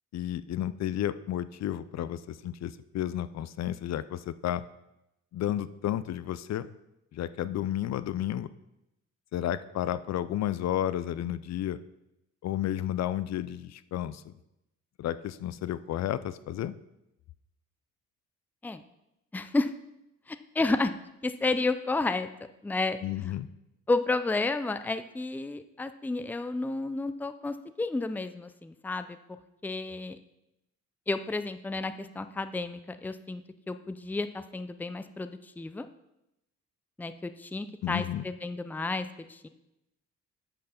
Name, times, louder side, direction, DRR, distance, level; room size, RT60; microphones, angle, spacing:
voice 1, 0.1-4.6 5.3-6.7 7.1-8.5 9.3-11.8 12.4-14.3 15.0-16.7 23.0-23.5 37.8-38.2, left 12 dB, 60° left, 15 dB, 0.5 m, -32 dB
voice 2, 19.3-19.7 20.3-20.9 21.2-22.3 22.6-23.0 23.9-29.2 29.6-30.2 31.1-35.9 37.0-39.5, left 3 dB, 5° left, 11 dB, 0.5 m, -31 dB
8.9 x 5.6 x 5.8 m, 0.88 s
cardioid pair, 90°, 30 cm